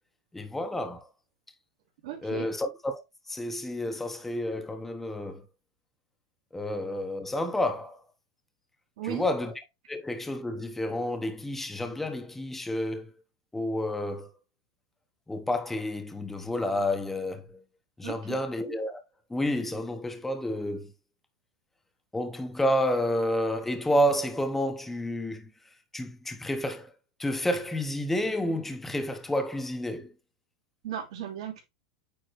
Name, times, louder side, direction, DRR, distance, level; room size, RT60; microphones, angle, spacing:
voice 1, 0.3-1.1 2.2-3.0 3.3-5.4 6.5-8.0 9.1-9.5 9.9-13.1 13.5-14.3 15.3-17.6 18.0-19.0 19.3-20.9 22.1-25.5 25.9-26.9 27.2-30.1, left 1 dB, 5° left, 1.1 m, -30 dB
voice 2, 2.0-2.5 9.0-9.3 18.0-18.4 30.8-31.6, right 11 dB, 70° right, 3.0 m, -36 dB
9.2 x 3.9 x 3.1 m
hypercardioid pair, 120°, 3 cm